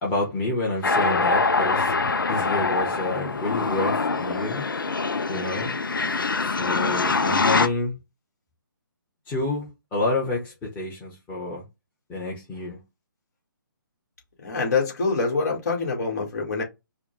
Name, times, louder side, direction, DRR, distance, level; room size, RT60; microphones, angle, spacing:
voice 1, 0.0-4.6 5.3-5.7 6.4-7.9 9.3-11.6 12.1-12.8, left 2 dB, 15° left, 1.3 m, -29 dB
sound 1, 0.8-7.7, left 3 dB, 70° left, 0.6 m, -24 dB
voice 2, 14.4-16.6, left 4 dB, 50° left, 2.2 m, -25 dB
4.9 x 2.4 x 3.4 m
figure-of-eight pair, 140°, 12 cm